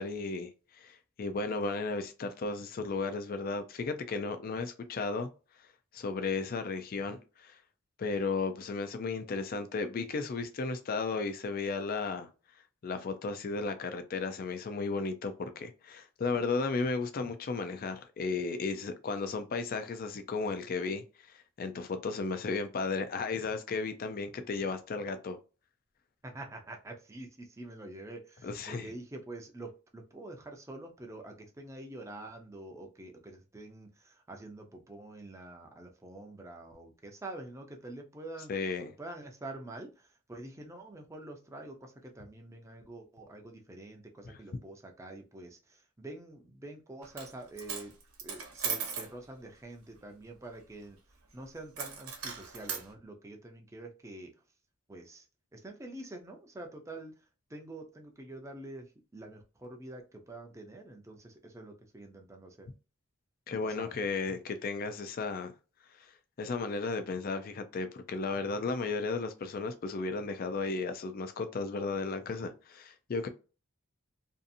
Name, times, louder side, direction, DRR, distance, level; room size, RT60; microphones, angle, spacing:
voice 1, 0.0-5.3 5.9-7.6 8.0-12.3 12.8-25.4 28.4-28.9 38.5-38.9 63.5-65.5 65.9-73.3, left 4 dB, 40° left, 0.4 m, -34 dB
voice 2, 26.2-38.5 39.0-47.9 48.2-51.0 51.3-54.3 54.9-55.3 55.5-57.2 57.5-62.7 63.5-64.0, right 2 dB, 15° right, 0.5 m, -46 dB
Coin (dropping), 47.0-47.3 47.6-49.1 51.7-52.8, right 6 dB, 80° right, 0.9 m, -37 dB
2.6 x 2.5 x 2.5 m
head